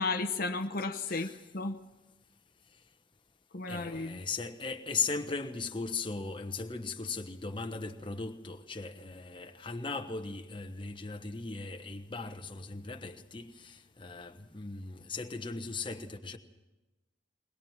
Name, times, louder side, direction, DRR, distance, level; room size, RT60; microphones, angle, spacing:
voice 1, 0.0-1.8 3.5-4.2, left 3 dB, 45° left, 0.9 m, -33 dB
voice 2, 1.1-1.4 3.7-16.4, left 4 dB, 25° left, 1.1 m, -38 dB
21.5 x 20.5 x 7.4 m
head